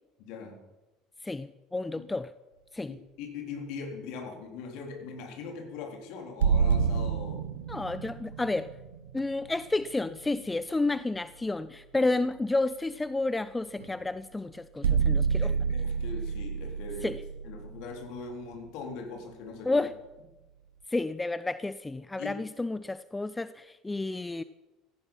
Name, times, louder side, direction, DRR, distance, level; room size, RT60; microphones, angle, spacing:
voice 1, 0.2-0.6 1.9-2.2 2.9-7.4 12.0-12.1 15.4-17.2 17.4-19.8 22.2-22.3, left 4 dB, 55° left, 3 dB, 3.8 m, -41 dB
voice 2, 1.2-2.3 2.7-3.0 7.7-8.7 9.1-15.5 17.0-17.2 19.7-19.9 20.9-24.4, left 2 dB, 15° left, 15 dB, 0.6 m, -31 dB
sound 1, 6.4-10.2 13.8-13.9 14.8-18.7, right 6 dB, 75° right, 1.1 m, -29 dB
17.0 x 15.0 x 5.6 m, 1.1 s
figure-of-eight pair, 65°, 0 cm